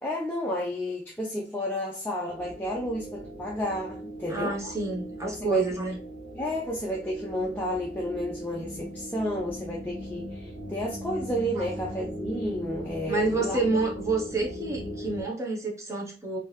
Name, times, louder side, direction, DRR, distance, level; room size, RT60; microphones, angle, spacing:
voice 1, 0.0-4.6 5.3-5.7 6.3-13.6, equal, 10° left, 0.5 m, -31 dB
sound 1, 2.3-15.2, equal, 70° right, 1.1 m, -39 dB
voice 2, 4.3-6.0 11.6-11.7 13.1-16.4, right 3 dB, 15° right, 0.9 m, -29 dB
3.4 x 2.7 x 3.1 m
head